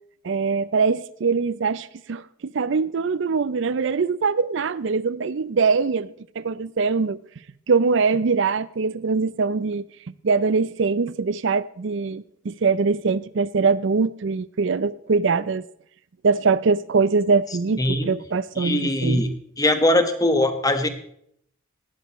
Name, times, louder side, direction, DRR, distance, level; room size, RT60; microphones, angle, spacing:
voice 1, 0.2-7.2 7.7-9.8 10.2-15.6 16.2-19.2, right 4 dB, 65° right, 0.5 m, -22 dB
voice 2, 17.8-18.1 18.6-19.3 19.6-20.9, left 1 dB, 20° left, 1.3 m, -21 dB
18.0 x 12.5 x 3.1 m
head